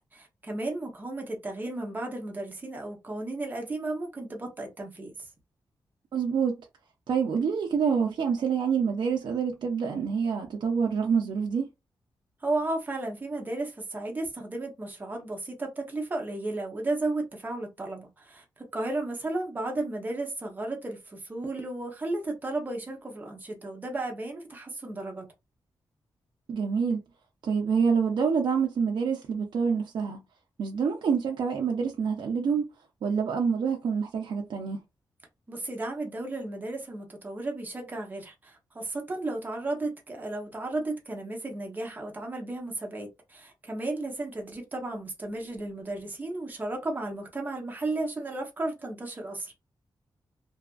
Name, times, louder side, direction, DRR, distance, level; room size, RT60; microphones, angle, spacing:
voice 1, 0.0-5.3 12.4-18.4 18.7-25.3 35.5-49.5, right 2 dB, 20° right, 0.7 m, -34 dB
voice 2, 6.1-6.6 7.1-11.7 26.5-27.0 27.4-30.2 30.6-32.7 33.0-34.8, right 6 dB, 65° right, 0.5 m, -27 dB
2.6 x 2.4 x 2.3 m
wide cardioid pair, 160°, 8 cm